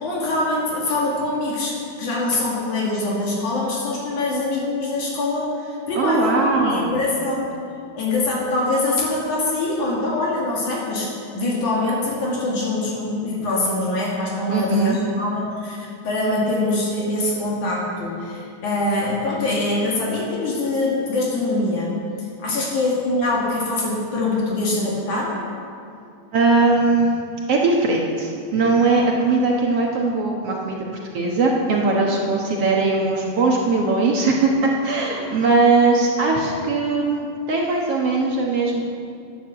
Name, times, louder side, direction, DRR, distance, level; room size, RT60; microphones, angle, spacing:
voice 1, 0.0-7.5 8.0-22.0 22.4-25.4, left 2 dB, 65° left, -4 dB, 3.5 m, -23 dB
voice 2, 6.0-7.0 14.5-15.0 22.5-22.6 26.3-27.1 27.5-30.8 31.1-38.8, right 3 dB, 60° right, -1 dB, 1.9 m, -20 dB
12.0 x 10.0 x 7.5 m, 2.4 s
omnidirectional pair, 3.9 m